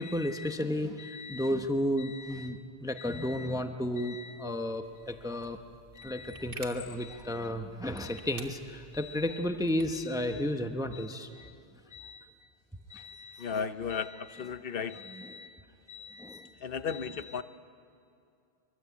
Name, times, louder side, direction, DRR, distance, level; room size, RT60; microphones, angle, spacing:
voice 1, 0.0-5.6 5.9-11.5 11.9-12.3 12.9-13.5 13.9-14.1 14.9-15.5 15.9-16.5 16.9-17.2, left 1 dB, 5° right, 6 dB, 0.8 m, -33 dB
sound 1, 4.8-10.1, right 3 dB, 55° right, 1.8 m, -51 dB
voice 2, 13.4-15.1 16.6-17.4, left 6 dB, 60° left, 12 dB, 0.9 m, -34 dB
24.0 x 23.0 x 8.4 m, 2.4 s
omnidirectional pair, 1.1 m